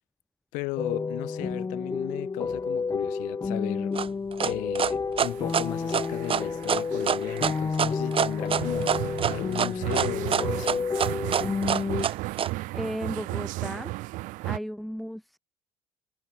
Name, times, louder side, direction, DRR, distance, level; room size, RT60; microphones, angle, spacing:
voice 1, 0.5-4.0 4.4-10.9, left 26 dB, 70° left, 1.6 m, -36 dB
sound 1, 0.8-12.1, left 4 dB, 20° left, 0.9 m, -30 dB
sound 2, 4.0-12.5, right 8 dB, 40° right, 1.5 m, -26 dB
sound 3, 5.2-14.6, right 20 dB, 65° right, 1.1 m, -35 dB
voice 2, 12.7-13.9 14.4-15.4, equal, ahead, 5.0 m, -35 dB
hypercardioid pair, 65°, 14 cm